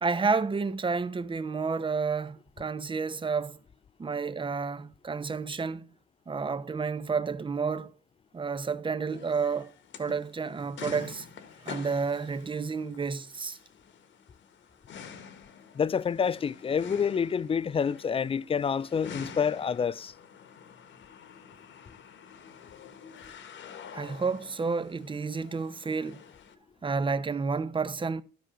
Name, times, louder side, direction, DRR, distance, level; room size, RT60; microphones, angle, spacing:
voice 1, 0.0-3.6 4.0-5.9 6.3-7.9 8.3-9.7 10.0-11.3 11.6-13.6 23.9-26.2 26.8-28.2, right 5 dB, 25° right, 0.8 m, -30 dB
sound 1, 9.1-26.5, left 7 dB, 70° left, 1.4 m, -48 dB
voice 2, 15.7-20.1, left 7 dB, 30° left, 0.4 m, -28 dB
12.5 x 6.2 x 5.0 m
cardioid pair, 90°, 20 cm